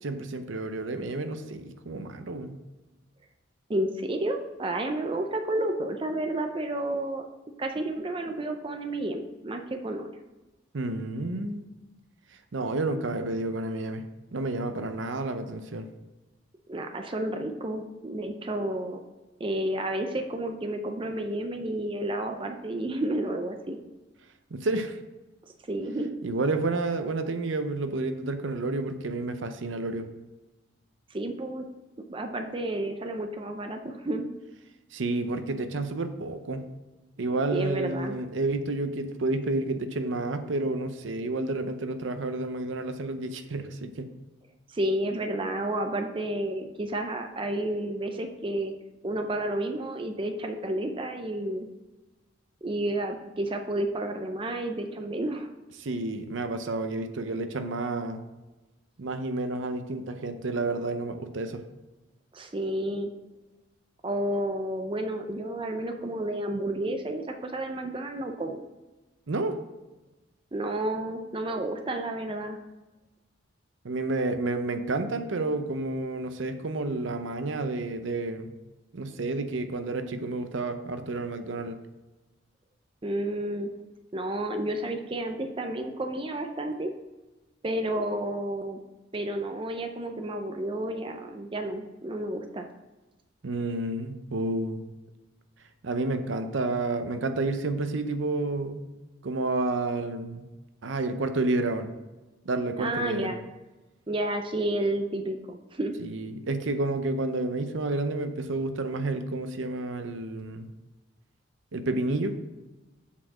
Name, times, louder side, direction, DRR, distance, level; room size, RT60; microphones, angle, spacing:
voice 1, 0.0-2.5 10.7-11.6 12.5-14.0 14.3-15.9 24.5-25.0 26.2-30.1 34.9-36.6 37.2-44.1 55.8-58.2 59.0-61.6 69.3-69.6 73.8-78.5 78.9-81.8 93.4-94.9 95.8-98.9 99.2-100.5 100.8-101.9 102.4-103.3 106.0-110.7 111.7-112.4, right 2 dB, 70° right, 8 dB, 0.6 m, -30 dB
voice 2, 3.7-7.2 7.6-10.1 16.7-19.0 19.4-23.8 25.7-26.1 31.1-31.6 32.1-34.3 37.5-38.1 44.7-48.7 49.0-51.7 52.6-55.5 62.3-63.1 64.0-68.6 70.5-72.6 83.0-83.7 84.1-86.9 87.6-88.8 89.1-92.7 102.8-103.4 104.1-106.0, right 1 dB, 25° right, 5 dB, 0.5 m, -31 dB
7.3 x 4.4 x 6.1 m, 1.1 s
head